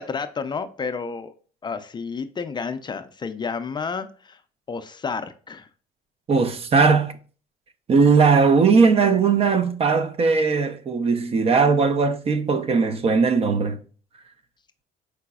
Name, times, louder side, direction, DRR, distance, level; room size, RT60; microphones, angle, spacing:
voice 1, 0.0-1.3 1.6-4.4 4.7-5.7, left 5 dB, 25° left, 0.4 m, -31 dB
voice 2, 6.3-7.1 7.9-13.8, right 5 dB, 35° right, 0.5 m, -19 dB
4.7 x 3.8 x 2.2 m
cardioid pair, 110°, 17 cm